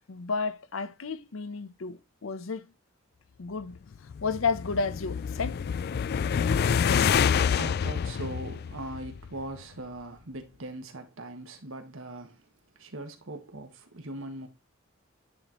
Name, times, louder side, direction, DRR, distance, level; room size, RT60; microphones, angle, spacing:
voice 1, 0.1-2.7 3.4-3.8 4.2-5.6, left 4 dB, 70° left, 0.7 m, -32 dB
sound 1, 3.9-9.4, left 7 dB, 50° left, 0.3 m, -27 dB
voice 2, 6.6-14.5, right 1 dB, 70° right, 1.5 m, -41 dB
9.7 x 4.2 x 3.0 m
head